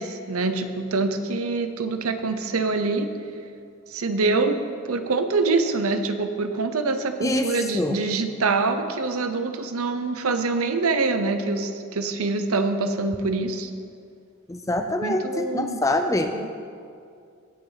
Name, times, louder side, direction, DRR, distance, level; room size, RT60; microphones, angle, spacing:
voice 1, 0.0-3.1 3.9-4.6 4.8-13.7 15.0-15.8 16.3-16.5, right 3 dB, 90° right, 8 dB, 0.8 m, -25 dB
voice 2, 7.2-8.0 14.5-16.3, left 1 dB, 15° left, 6 dB, 0.5 m, -25 dB
18.5 x 7.0 x 4.0 m, 2.3 s
head